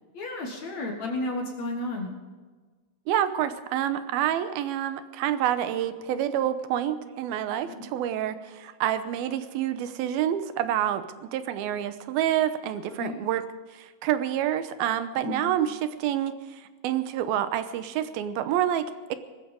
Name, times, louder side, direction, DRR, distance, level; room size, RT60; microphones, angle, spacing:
voice 1, 0.1-2.1 7.7-7.9 13.0-13.2 15.2-15.4, left 2 dB, 55° left, 1 dB, 2.6 m, -32 dB
voice 2, 3.1-13.4 13.7-19.2, right 11 dB, 90° right, 11 dB, 2.7 m, -28 dB
19.0 x 14.5 x 5.2 m, 1.4 s
omnidirectional pair, 4.3 m